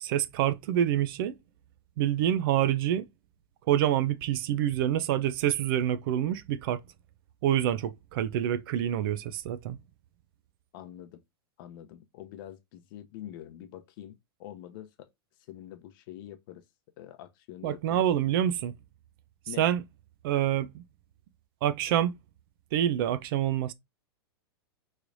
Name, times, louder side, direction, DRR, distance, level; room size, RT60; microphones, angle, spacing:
voice 1, 0.0-1.3 2.0-3.1 3.7-6.8 7.4-9.8 17.6-18.7 19.6-19.8 20.2-20.8 21.6-22.1 22.7-23.7, right 11 dB, 60° right, 0.4 m, -27 dB
voice 2, 10.7-11.2 11.6-15.1 15.5-16.6 17.0-18.1 19.5-19.7, left 12 dB, 55° left, 0.6 m, -45 dB
3.1 x 3.1 x 2.5 m
hypercardioid pair, 130°, 14 cm